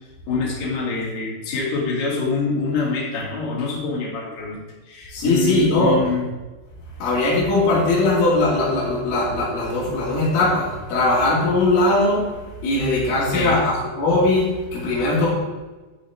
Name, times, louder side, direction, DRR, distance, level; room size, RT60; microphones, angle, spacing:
voice 1, 0.3-4.6 4.9-6.2 13.3-13.6, left 3 dB, 40° left, -5 dB, 3.4 m, -25 dB
voice 2, 5.1-6.0 7.0-12.3 12.6-15.3, left 2 dB, 80° left, -10 dB, 5.2 m, -20 dB
13.5 x 8.4 x 3.7 m, 1.2 s
omnidirectional pair, 5.8 m